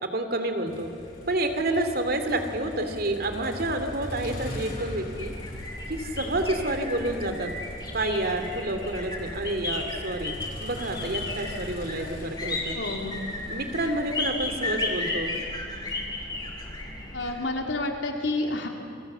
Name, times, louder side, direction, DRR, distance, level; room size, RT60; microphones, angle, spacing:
voice 1, 0.0-0.9 1.3-5.3 5.9-7.5 7.9-10.3 10.6-12.8 13.5-15.3, right 1 dB, 55° right, 7 dB, 2.7 m, -29 dB
Motor vehicle (road), 0.7-16.8, left 1 dB, 55° left, 7.1 m, -42 dB
sound 1, 5.1-17.3, left 2 dB, 25° left, 4.9 m, -34 dB
voice 2, 12.7-13.2 17.1-18.7, left 2 dB, 80° left, 2 dB, 3.7 m, -29 dB
28.5 x 22.5 x 8.1 m, 2.6 s
head